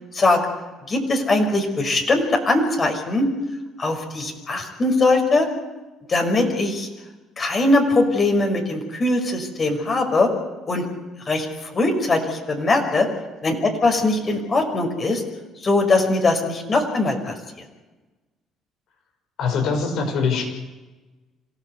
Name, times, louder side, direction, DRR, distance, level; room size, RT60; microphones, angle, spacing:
voice 1, 0.9-3.3 3.8-5.5 6.1-6.9 7.4-10.3 10.7-10.9 11.3-13.1 13.4-13.5 13.8-15.2 15.6-17.3, left 2 dB, 40° left, 3 dB, 5.8 m, -21 dB
voice 2, 19.4-20.4, left 5 dB, 65° left, 5 dB, 6.2 m, -22 dB
26.5 x 16.0 x 8.3 m, 1.2 s
hypercardioid pair, 60°, 0 cm